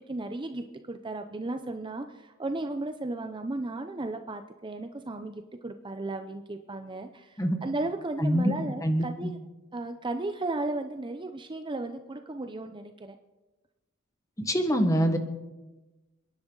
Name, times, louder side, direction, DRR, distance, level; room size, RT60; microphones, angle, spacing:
voice 1, 0.0-9.4 9.7-13.2, right 2 dB, 25° right, 7 dB, 0.6 m, -35 dB
voice 2, 8.2-8.5 8.8-9.3 14.4-15.2, equal, 15° left, 6 dB, 1.4 m, -25 dB
29.0 x 11.0 x 3.9 m, 1.1 s
head